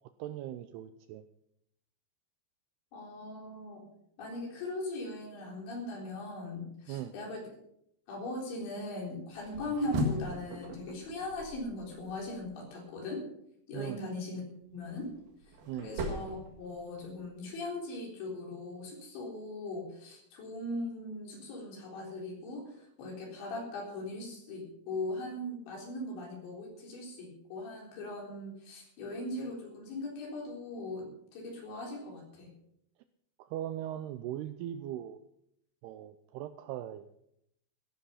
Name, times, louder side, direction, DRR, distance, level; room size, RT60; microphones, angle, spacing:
voice 1, 0.2-1.2 6.9-7.1 13.7-14.0 15.7-15.9 33.4-35.2 35.8-37.1, right 12 dB, 80° right, 10 dB, 2.4 m, -39 dB
voice 2, 2.9-3.8 4.2-7.4 8.1-13.2 13.7-14.4 14.7-15.1 15.8-32.5, left 2 dB, 80° left, -1 dB, 6.2 m, -39 dB
sound 1, 9.3-12.5 14.7-17.3, left 1 dB, 60° right, 3.3 m, -38 dB
15.0 x 11.5 x 5.7 m, 0.74 s
omnidirectional pair, 5.2 m